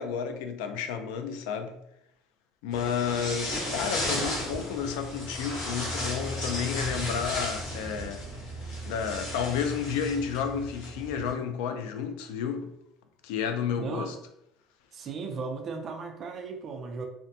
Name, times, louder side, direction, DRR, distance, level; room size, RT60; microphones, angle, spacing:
voice 1, 0.0-1.8 2.6-8.3 8.9-12.7 13.2-14.2, left 7 dB, 85° left, 0.3 m, -31 dB
sound 1, 2.7-11.3, left 1 dB, 55° left, 0.9 m, -34 dB
voice 2, 13.8-14.1 14.9-17.1, right 4 dB, 30° right, 0.4 m, -36 dB
2.5 x 2.1 x 2.6 m
cardioid pair, 175°, 0 cm